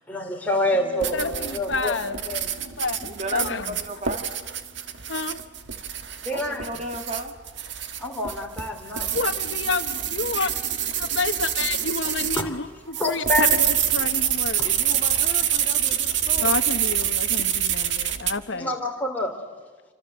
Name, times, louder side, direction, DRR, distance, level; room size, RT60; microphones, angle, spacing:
voice 1, 0.1-2.0 2.3-2.5 6.2-6.6 8.0-9.1 12.4-12.6 13.0-13.6 14.6-14.7 18.5-19.4, left 1 dB, 10° left, 1 dB, 3.4 m, -27 dB
sound 1, 0.6-7.2, left 1 dB, 10° right, 7.6 m, -47 dB
sound 2, 1.0-12.5 12.9-18.4, right 10 dB, 65° right, 1.5 m, -26 dB
voice 2, 1.1-2.2 2.6-3.8 5.1-5.4 9.1-10.5 11.0-14.7 16.4-18.7, left 4 dB, 70° left, 10 dB, 1.1 m, -29 dB
voice 3, 3.0-4.3 6.3-7.3 14.6-16.5, right 1 dB, 35° right, 6 dB, 2.0 m, -35 dB
28.5 x 25.5 x 8.0 m, 1.3 s
head